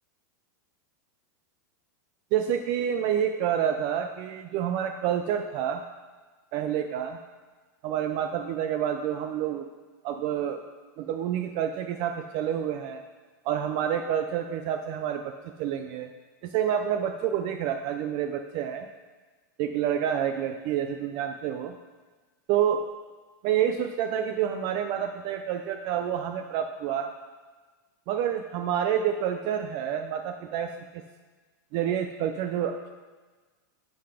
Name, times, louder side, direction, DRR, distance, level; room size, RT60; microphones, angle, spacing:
voice 1, 2.3-5.8 6.5-7.2 7.8-9.7 10.0-10.6 11.0-13.0 13.4-16.1 16.5-18.9 19.6-21.7 22.5-22.9 23.4-27.1 28.1-31.0 31.7-32.9, right 9 dB, 45° right, 6 dB, 0.5 m, -28 dB
11.5 x 4.0 x 4.9 m, 1.4 s
supercardioid pair, 135°, 11 cm